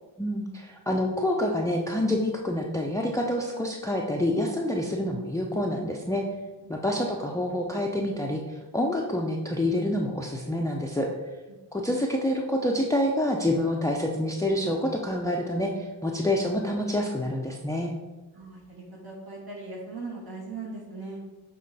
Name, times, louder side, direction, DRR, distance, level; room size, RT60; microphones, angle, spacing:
voice 1, 0.2-6.2 6.7-11.1 11.7-17.9, left 1 dB, 5° left, 0 dB, 0.7 m, -27 dB
voice 2, 6.6-7.0 11.5-11.9 18.3-21.2, right 3 dB, 55° right, -2 dB, 2.1 m, -40 dB
7.4 x 3.7 x 4.1 m, 1.2 s
cardioid pair, 45°, 44 cm